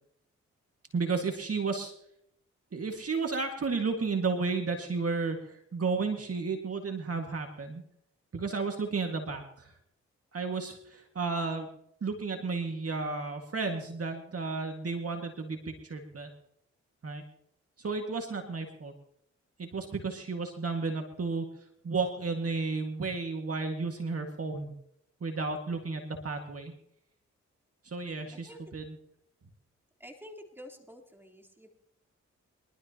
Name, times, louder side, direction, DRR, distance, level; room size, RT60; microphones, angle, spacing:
voice 1, 0.9-1.9 2.7-7.8 8.3-9.7 10.3-11.7 12.0-16.3 17.0-17.2 17.8-18.9 19.6-21.5 21.8-24.7 25.2-26.7 27.8-29.0, right 4 dB, 50° right, 3 dB, 1.9 m, -33 dB
voice 2, 30.0-31.7, equal, 5° right, 2 dB, 3.5 m, -49 dB
23.5 x 12.5 x 2.9 m, 0.72 s
supercardioid pair, 45°, 31 cm